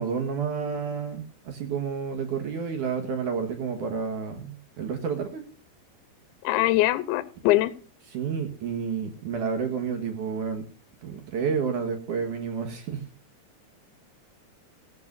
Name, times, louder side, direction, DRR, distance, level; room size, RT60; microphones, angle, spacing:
voice 1, 0.0-5.4 8.1-10.6 11.0-13.0, right 6 dB, 60° right, 6 dB, 2.2 m, -30 dB
voice 2, 6.4-7.7, left 16 dB, 80° left, 15 dB, 3.1 m, -22 dB
16.0 x 14.5 x 2.6 m, 0.40 s
omnidirectional pair, 5.3 m